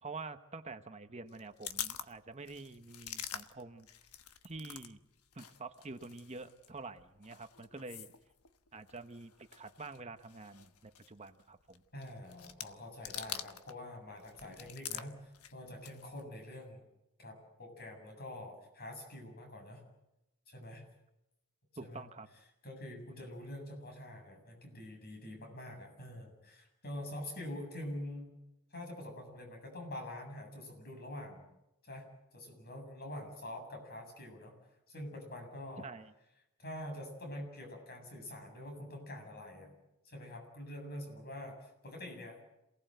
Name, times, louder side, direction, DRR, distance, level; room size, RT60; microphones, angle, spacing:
voice 1, 0.0-3.9 4.4-5.0 5.3-8.1 8.7-11.8 21.8-22.3 35.8-36.1, right 3 dB, 30° right, 9 dB, 1.0 m, -47 dB
sound 1, 1.3-4.9 5.2-13.8 14.1-16.2, left 10 dB, 85° left, 1.2 m, -46 dB
voice 2, 11.9-16.8 17.2-19.8 20.5-20.8 21.8-22.0 22.6-28.3 28.7-31.4 31.8-34.6 34.9-35.9 36.6-39.7 40.0-42.4, left 1 dB, 45° left, 3 dB, 7.8 m, -46 dB
27.5 x 18.5 x 8.0 m, 0.89 s
head